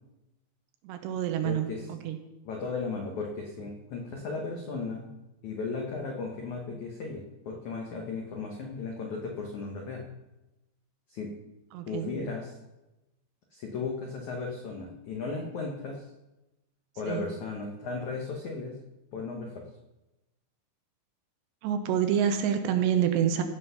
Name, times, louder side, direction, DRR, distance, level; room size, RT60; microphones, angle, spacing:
voice 1, 0.8-2.2 11.7-12.2 17.0-17.3 21.6-23.4, right 9 dB, 75° right, 7 dB, 2.9 m, -28 dB
voice 2, 1.4-1.8 2.4-5.1 5.4-10.0 11.1-11.3 11.9-12.6 13.5-16.0 17.0-18.8 19.1-19.6, left 4 dB, 85° left, 0 dB, 1.6 m, -35 dB
16.0 x 5.8 x 5.7 m, 0.98 s
omnidirectional pair, 5.3 m